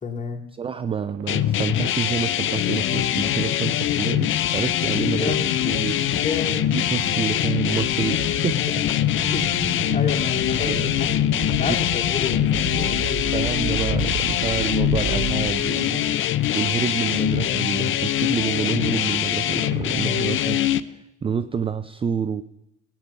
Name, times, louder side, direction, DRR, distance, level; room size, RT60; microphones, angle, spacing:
voice 1, 0.0-0.4 5.0-5.5 6.1-6.7 9.1-9.4 9.9-11.2 11.6-13.2, left 5 dB, 25° left, 0 dB, 2.7 m, -30 dB
voice 2, 0.5-5.3 5.6-6.0 6.5-8.7 9.6-10.0 10.6-10.9 11.7-11.8 13.3-22.4, right 7 dB, 15° right, 12 dB, 0.5 m, -28 dB
sound 1, 1.0-16.1, right 6 dB, 50° right, 1.5 m, -35 dB
sound 2, 1.3-20.8, left 12 dB, 40° left, 0.6 m, -23 dB
sound 3, 2.8-12.8, left 12 dB, 60° left, 1.1 m, -32 dB
16.5 x 9.3 x 5.8 m, 0.86 s
hypercardioid pair, 80°, 32 cm